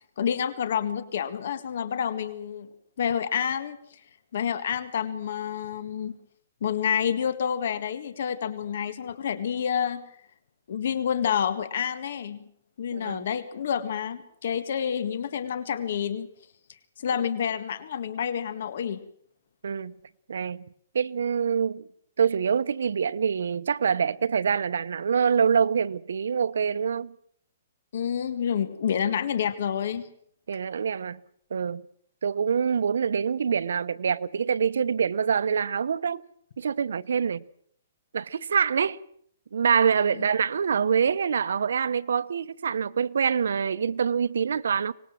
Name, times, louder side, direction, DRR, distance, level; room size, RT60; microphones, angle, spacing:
voice 1, 0.2-2.7 3.0-4.0 4.3-6.2 6.6-10.0 10.7-12.4 12.8-16.3 17.0-19.0 27.9-30.1 40.1-40.2, left 8 dB, 60° left, 1.8 m, -28 dB
voice 2, 12.9-13.3 19.6-19.9 20.3-20.7 20.9-21.9 22.2-27.1 30.5-31.2 31.5-31.8 32.2-36.2 36.6-37.4 38.1-39.0 39.5-44.9, right 7 dB, 80° right, 0.9 m, -25 dB
24.5 x 20.0 x 7.6 m
hypercardioid pair, 165°, 0 cm